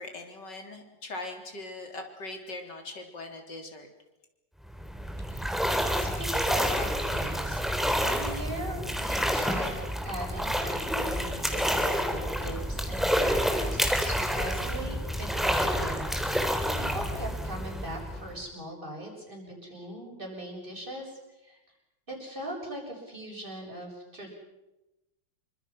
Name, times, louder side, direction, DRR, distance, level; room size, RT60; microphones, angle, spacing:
voice 1, 0.0-3.9, left 2 dB, 65° left, 3 dB, 4.3 m, -40 dB
sound 1, 4.7-18.4, equal, ahead, 3.5 m, -29 dB
voice 2, 5.3-7.6 7.9-9.7 10.0-21.6 22.1-24.3, right 1 dB, 25° right, 0 dB, 7.4 m, -40 dB
28.5 x 25.0 x 6.1 m, 0.98 s
omnidirectional pair, 2.0 m